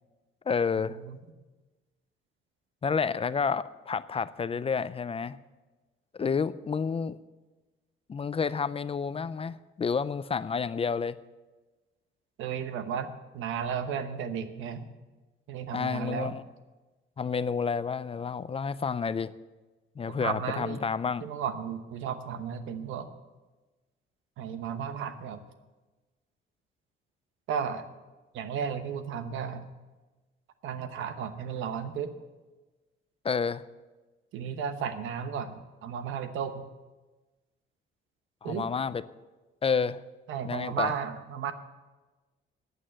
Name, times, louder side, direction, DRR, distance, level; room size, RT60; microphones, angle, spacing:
voice 1, 0.5-1.0 2.8-5.4 6.1-7.2 8.1-11.2 15.7-16.5 17.2-19.3 20.0-21.3 33.2-33.7 38.4-39.0 39.6-40.0 40.4-40.9, left 5 dB, 30° left, 16 dB, 0.4 m, -30 dB
voice 2, 12.4-14.8 15.5-16.3 20.1-20.8 21.2-23.1 24.4-25.4 27.5-27.9 28.3-29.6 30.6-32.1 34.3-36.6 38.4-38.6 40.3-41.5, right 7 dB, 85° right, 10 dB, 1.0 m, -34 dB
9.5 x 8.6 x 8.9 m, 1.2 s
cardioid pair, 90°, 20 cm